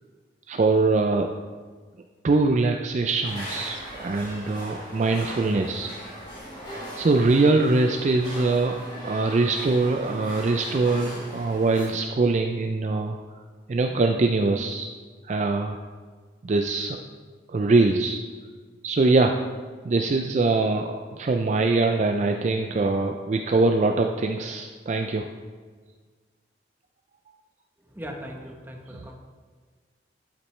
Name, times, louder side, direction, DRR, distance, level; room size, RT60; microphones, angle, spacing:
voice 1, 0.5-1.3 2.2-5.9 7.0-8.8 9.0-13.2 13.7-14.9 15.2-15.8 16.4-17.0 17.5-18.2 18.8-19.4 19.8-25.3, right 3 dB, 40° right, 4 dB, 0.3 m, -23 dB
sound 1, 3.2-11.9, equal, 25° left, 2.5 m, -39 dB
voice 2, 27.8-29.1, equal, 10° right, 1 dB, 0.9 m, -39 dB
12.0 x 5.9 x 3.2 m, 1.5 s
head